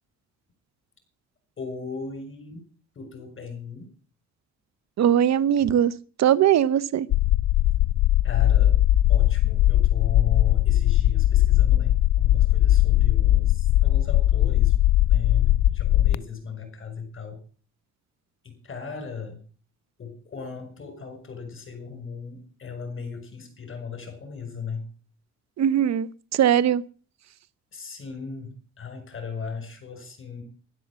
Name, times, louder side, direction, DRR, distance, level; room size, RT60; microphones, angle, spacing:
voice 1, 1.6-2.7 2.9-3.9 8.2-8.8 9.1-14.8 15.1-17.4 18.4-19.4 20.0-24.9 27.7-30.4, left 5 dB, 45° left, 6.3 m, -36 dB
voice 2, 5.0-5.9 6.2-7.1 25.6-26.8, right 10 dB, 65° right, 0.8 m, -20 dB
sound 1, 7.1-16.1, left 13 dB, 70° left, 0.6 m, -19 dB
12.0 x 11.5 x 7.5 m
cardioid pair, 90°, 30 cm